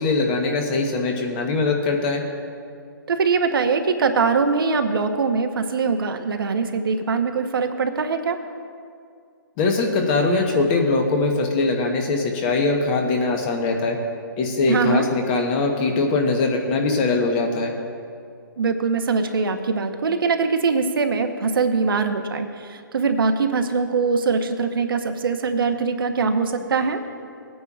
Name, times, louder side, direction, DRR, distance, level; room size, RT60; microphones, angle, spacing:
voice 1, 0.0-2.2 9.6-14.0 14.4-17.7, left 3 dB, 25° left, 3 dB, 1.0 m, -21 dB
voice 2, 3.1-8.4 14.7-15.0 18.6-27.0, right 4 dB, 75° right, 6 dB, 0.9 m, -22 dB
19.0 x 9.4 x 2.4 m, 2.3 s
hypercardioid pair, 160°, 12 cm